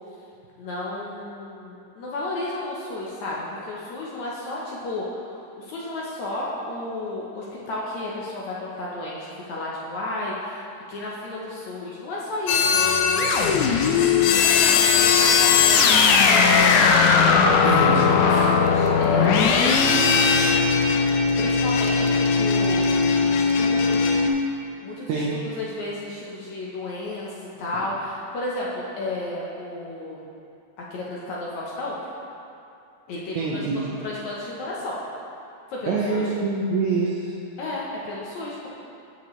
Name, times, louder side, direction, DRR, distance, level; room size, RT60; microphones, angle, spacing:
voice 1, 0.6-10.6 10.9-16.6 17.5-20.4 21.4-22.8 23.3-24.2 24.8-30.3 30.9-32.1 33.1-33.7 34.0-35.0 35.7-36.3 37.6-38.7, left 2 dB, 70° left, -5 dB, 1.8 m, -33 dB
sound 1, 12.5-24.3, left 5 dB, 85° left, 1.7 m, -18 dB
voice 2, 17.6-18.0 25.1-25.4 33.4-33.8 35.9-37.3, right 4 dB, 75° right, -5 dB, 1.8 m, -25 dB
14.5 x 5.4 x 3.1 m, 2.6 s
omnidirectional pair, 4.2 m